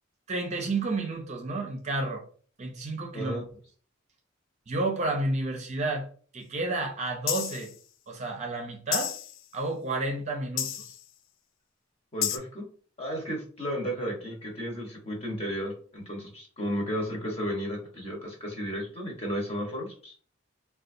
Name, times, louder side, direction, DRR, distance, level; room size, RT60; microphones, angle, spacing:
voice 1, 0.3-2.2 2.6-3.4 4.7-6.1 6.3-7.7 8.1-9.1 9.5-10.7, right 2 dB, 35° right, 3 dB, 0.5 m, -31 dB
voice 2, 3.1-3.4 12.1-12.6 13.0-20.1, equal, 30° left, -1 dB, 1.0 m, -33 dB
sound 1, 7.3-7.7 8.9-9.4 10.6-11.0 12.2-12.4, left 10 dB, 60° left, 0.3 m, -30 dB
3.9 x 2.3 x 2.5 m, 0.44 s
head